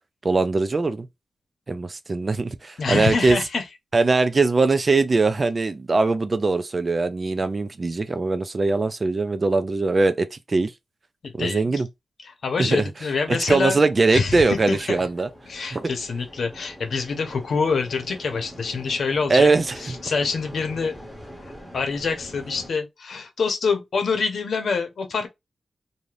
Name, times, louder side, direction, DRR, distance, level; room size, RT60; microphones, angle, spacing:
voice 1, 0.2-1.1 1.7-3.4 3.9-10.7 11.4-11.9 12.6-12.8 13.3-15.3 15.7-15.9 19.3-19.7, right 3 dB, 35° right, 0.4 m, -21 dB
voice 2, 2.8-3.6 11.2-11.8 12.2-13.8 14.1-15.0 15.5-19.5 19.8-21.0 21.4-25.3, left 4 dB, 75° left, 0.8 m, -26 dB
sound 1, 13.2-22.7, equal, ahead, 1.1 m, -43 dB
2.6 x 2.4 x 3.2 m
wide cardioid pair, 105°, 0 cm